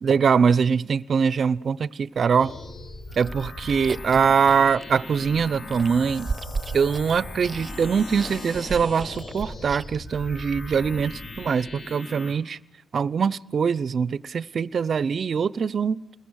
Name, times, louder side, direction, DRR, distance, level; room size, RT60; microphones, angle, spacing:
voice 1, 0.0-2.5 3.2-6.3 6.7-12.6 12.9-16.0, right 6 dB, 50° right, 0.7 m, -23 dB
sound 1, 2.4-12.3, left 2 dB, 45° left, 4.6 m, -38 dB
Chewing mastication, 3.1-10.1, right 4 dB, 25° right, 0.9 m, -37 dB
29.0 x 21.0 x 6.5 m
cardioid pair, 90°, 0 cm